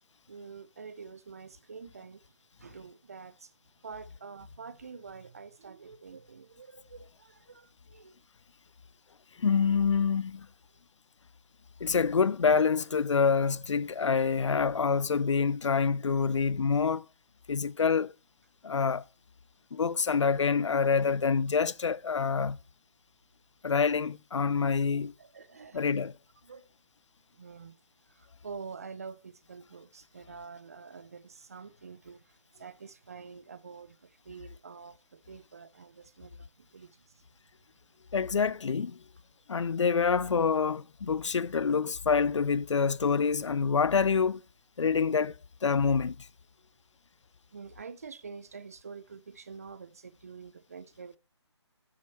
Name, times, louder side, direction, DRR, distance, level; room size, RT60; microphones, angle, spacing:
voice 1, 0.3-2.2 2.6-3.5 3.8-8.1 9.5-9.6 24.5-24.7 25.2-25.8 26.4-26.7 27.3-27.8 28.1-37.2 47.5-51.2, right 5 dB, 30° right, 0.5 m, -47 dB
voice 2, 9.4-10.5 11.8-17.1 17.5-18.1 18.6-19.0 19.7-22.6 23.6-25.1 25.7-26.1 38.1-39.0 39.5-44.4 44.8-45.4 45.6-46.3, left 5 dB, 80° left, 0.5 m, -26 dB
9.5 x 7.8 x 4.4 m
hypercardioid pair, 170°, 15 cm